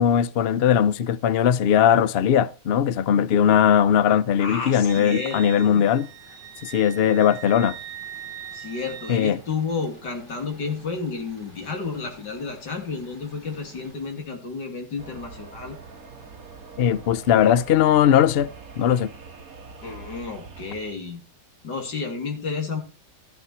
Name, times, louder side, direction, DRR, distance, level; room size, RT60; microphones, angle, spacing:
voice 1, 0.0-6.1 6.6-7.8 9.1-9.4 16.8-19.1, left 9 dB, 70° left, 0.5 m, -19 dB
voice 2, 4.4-5.9 8.5-15.8 17.4-17.5 19.8-21.2 21.6-22.8, left 4 dB, 85° left, 3.3 m, -31 dB
Wind instrument woodwind instrument, 4.9-9.4, right 10 dB, 75° right, 1.6 m, -40 dB
Engine / Mechanisms, 5.0-15.1 16.7-17.4 18.0-18.1 18.4-18.5 19.3-19.4 19.7-20.0, right 1 dB, 30° left, 6.8 m, -52 dB
sound 1, 15.0-20.9, right 4 dB, 55° right, 2.0 m, -43 dB
13.5 x 8.5 x 4.3 m
omnidirectional pair, 1.8 m